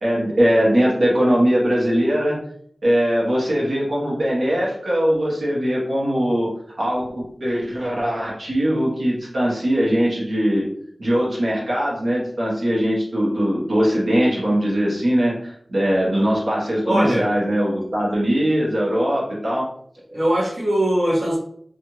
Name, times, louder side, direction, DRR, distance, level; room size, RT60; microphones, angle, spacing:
voice 1, 0.0-2.4 2.8-10.7 11.0-19.6, equal, 75° right, -5 dB, 1.2 m, -21 dB
voice 2, 16.8-17.3 20.1-21.4, right 1 dB, 50° right, -9 dB, 1.2 m, -20 dB
3.2 x 2.5 x 2.9 m, 0.64 s
wide cardioid pair, 75°, 0 cm